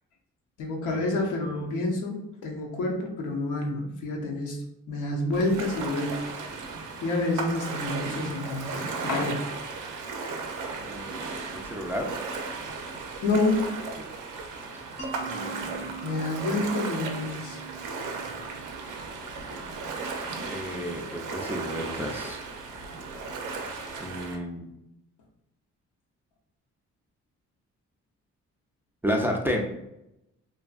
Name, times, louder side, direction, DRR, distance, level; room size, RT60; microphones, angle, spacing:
voice 1, 0.6-6.3 7.0-8.8 9.0-9.5 13.2-13.7 16.0-17.6, left 2 dB, 80° left, 0 dB, 0.7 m, -28 dB
Ocean, 5.3-24.4, right 4 dB, 85° right, 0.5 m, -36 dB
voice 2, 10.8-12.1 15.2-16.0 20.5-22.4 24.0-24.7 29.0-29.6, equal, 5° right, 0 dB, 0.3 m, -32 dB
Mallet percussion, 15.0-19.8, right 5 dB, 20° left, 0.7 m, -43 dB
2.7 x 2.4 x 2.3 m, 0.86 s
cardioid pair, 90°, 30 cm